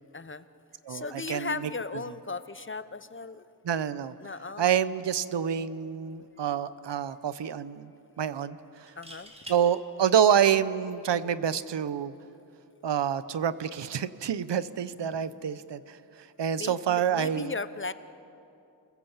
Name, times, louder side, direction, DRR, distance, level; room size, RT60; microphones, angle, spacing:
voice 1, 0.1-0.5 0.9-3.5 4.2-4.7 9.0-9.3 16.6-17.9, left 3 dB, 30° left, 13 dB, 0.8 m, -36 dB
voice 2, 0.9-1.5 3.6-4.1 4.6-7.9 8.2-8.9 9.5-12.1 12.8-16.0 16.4-17.5, right 8 dB, 80° right, 15 dB, 0.8 m, -27 dB
sound 1, 5.9-6.2 6.5-6.6 8.8-9.6 11.4-11.6, right 1 dB, 15° right, 3.6 m, -45 dB
29.5 x 21.0 x 7.2 m, 2.7 s
wide cardioid pair, 90°, 42 cm